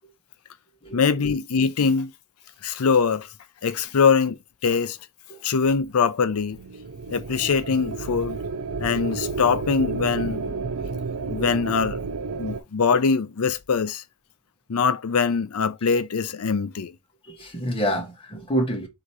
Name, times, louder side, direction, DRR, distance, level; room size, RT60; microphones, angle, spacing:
voice 1, 0.9-2.1 2.6-3.3 3.6-5.0 5.4-6.6 7.1-8.4 8.8-10.7 11.3-12.0 12.4-14.0 14.7-16.9, left 5 dB, 75° left, 0.5 m, -23 dB
sound 1, 6.5-12.6, right 4 dB, 85° right, 0.5 m, -31 dB
voice 2, 17.2-18.9, equal, 25° left, 1.4 m, -27 dB
3.7 x 2.9 x 4.7 m
head